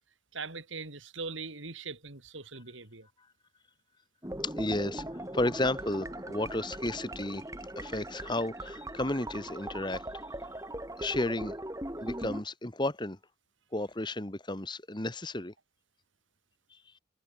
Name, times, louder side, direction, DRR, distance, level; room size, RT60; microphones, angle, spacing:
voice 1, 0.3-3.1, right 4 dB, 80° right, 3.6 m, -41 dB
sound 1, 4.2-12.4, right 1 dB, 15° right, 3.7 m, -40 dB
voice 2, 4.4-7.4 7.8-10.2 10.5-10.6 11.0-11.6 12.0-13.2 13.7-15.5 16.7-16.8, left 1 dB, 25° left, 1.7 m, -33 dB
head